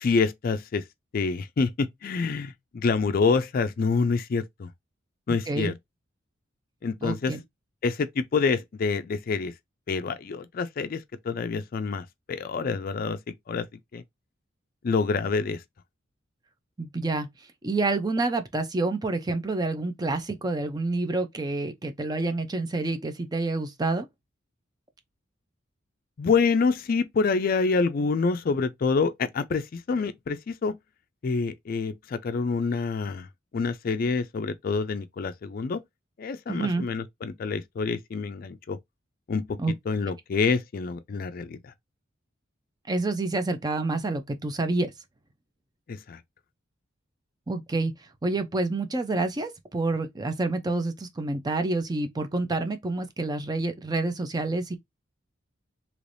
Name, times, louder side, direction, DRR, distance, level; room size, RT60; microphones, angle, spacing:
voice 1, 0.0-0.8 1.1-4.7 5.3-5.7 6.8-7.3 7.8-9.5 9.9-13.2 13.5-13.7 13.9-14.0 14.8-15.6 26.2-30.7 31.2-33.3 33.5-35.8 36.2-38.8 39.3-39.6 39.9-41.6 45.9-46.2, left 4 dB, 45° left, 0.4 m, -27 dB
voice 2, 7.0-7.4 16.8-17.3 17.6-24.1 36.5-36.8 39.6-39.7 42.9-44.9 47.5-47.9 48.2-54.8, right 2 dB, 20° right, 0.5 m, -28 dB
3.3 x 3.0 x 2.5 m
head